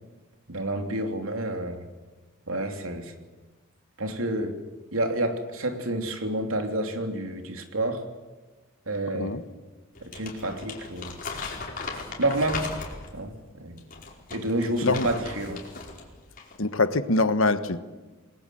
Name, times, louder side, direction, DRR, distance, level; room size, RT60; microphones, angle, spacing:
voice 1, 0.5-1.9 2.5-3.1 4.0-4.6 4.9-8.0 8.9-9.4 10.0-11.1 12.2-12.7 13.1-13.8 14.3-15.6, right 1 dB, 90° right, 5 dB, 3.3 m, -29 dB
Crumpling crinkling, 9.9-13.2 13.8-16.0 16.3-16.6, left 4 dB, 45° left, 4.8 m, -37 dB
voice 2, 16.6-17.8, left 3 dB, 75° left, 12 dB, 1.4 m, -23 dB
28.0 x 20.5 x 7.8 m, 1.2 s
head